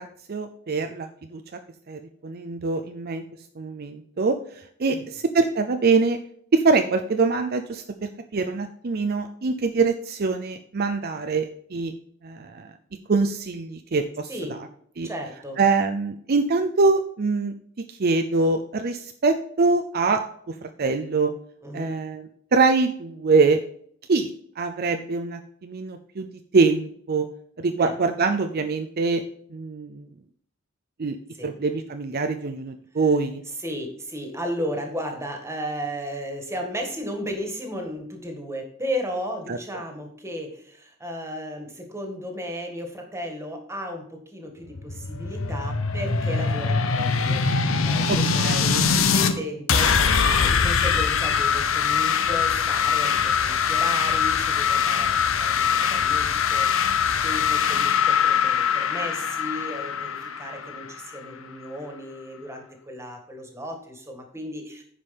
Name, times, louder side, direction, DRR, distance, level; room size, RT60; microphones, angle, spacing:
voice 1, 0.0-1.4 1.9-3.3 3.6-6.2 6.5-11.9 12.2-12.7 13.1-14.3 15.0-15.1 15.6-17.5 17.9-21.3 21.7-23.6 24.1-26.3 26.5-27.3 27.6-29.2 29.5-30.1 31.0-31.2 31.4-33.4 39.5-39.6 48.1-48.8, right 4 dB, 50° right, 6 dB, 0.5 m, -24 dB
voice 2, 14.3-14.6 15.0-15.6 21.6-21.9 27.8-27.9 31.4-31.5 33.6-56.9 57.2-64.8, equal, 15° right, 3 dB, 1.8 m, -34 dB
sound 1, 44.7-49.3 49.7-61.3, left 6 dB, 90° left, 0.9 m, -22 dB
9.8 x 5.3 x 5.2 m, 0.64 s
head